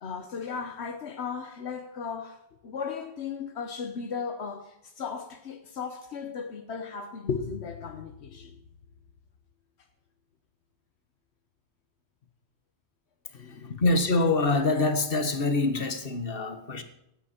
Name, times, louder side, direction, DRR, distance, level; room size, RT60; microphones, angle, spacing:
voice 1, 0.0-8.6 13.3-13.8, left 6 dB, 80° left, 1.2 m, -36 dB
voice 2, 13.2-16.8, left 3 dB, 55° left, 1.7 m, -25 dB
15.5 x 9.7 x 4.4 m
omnidirectional pair, 1.1 m